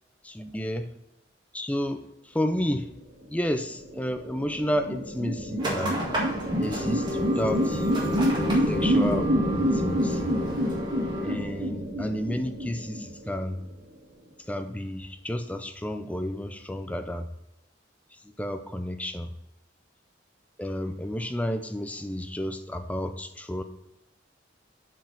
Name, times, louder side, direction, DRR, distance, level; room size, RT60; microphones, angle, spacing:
voice 1, 0.3-0.9 1.5-2.9 3.2-6.0 6.6-7.9 8.7-10.3 11.2-13.6 14.5-17.3 18.2-19.3 20.6-23.6, equal, 10° left, 7 dB, 0.5 m, -31 dB
sound 1, 3.7-13.5, equal, 75° right, 2.7 m, -27 dB
sound 2, 5.6-11.3, left 1 dB, 25° right, 1.7 m, -32 dB
7.6 x 4.8 x 5.3 m, 0.88 s
head